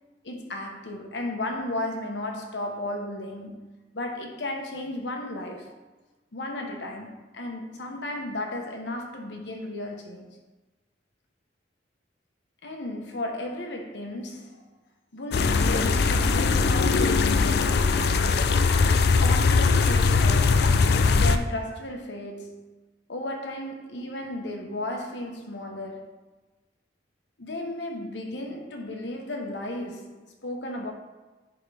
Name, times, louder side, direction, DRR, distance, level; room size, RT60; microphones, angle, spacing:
voice 1, 0.2-5.7 6.3-10.3 12.6-14.7 15.1-18.2 19.2-22.7 23.1-26.1 27.4-30.9, left 1 dB, 80° left, 1.0 m, -34 dB
sound 1, 15.3-21.4, left 4 dB, 60° left, 0.4 m, -21 dB
10.5 x 3.7 x 3.4 m
head